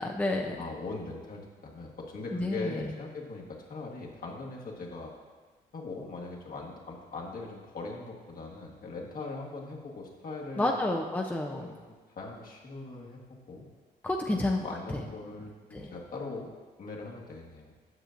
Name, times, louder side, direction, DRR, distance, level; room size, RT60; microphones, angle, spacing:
voice 1, 0.0-0.6 2.3-2.8 10.6-11.7 14.0-14.6 14.9-15.0 15.7-15.9, left 2 dB, 10° left, 1 dB, 0.6 m, -30 dB
voice 2, 0.5-5.1 5.7-10.7 11.5-13.2 13.5-13.7 14.2-16.5 16.8-17.7, left 3 dB, 50° left, -2 dB, 1.4 m, -41 dB
7.9 x 6.4 x 2.6 m, 1.4 s
supercardioid pair, 65°, 18 cm